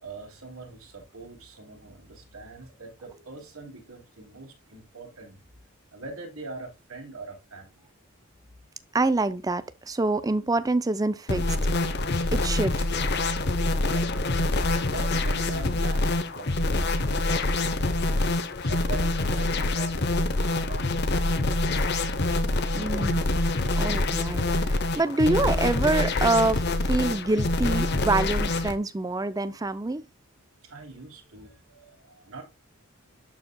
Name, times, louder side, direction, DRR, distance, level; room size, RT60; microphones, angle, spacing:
voice 1, 0.0-5.4 5.9-7.7 13.9-14.1 14.9-16.1 16.3-17.9 18.6-21.9 30.6-32.4, right 3 dB, 75° right, 3.2 m, -43 dB
voice 2, 8.9-11.6 12.3-12.8 22.7-23.4 23.8-30.0, right 2 dB, 15° right, 0.4 m, -26 dB
sound 1, 11.3-28.7, left 2 dB, 50° left, 0.8 m, -25 dB
12.0 x 4.5 x 2.2 m
head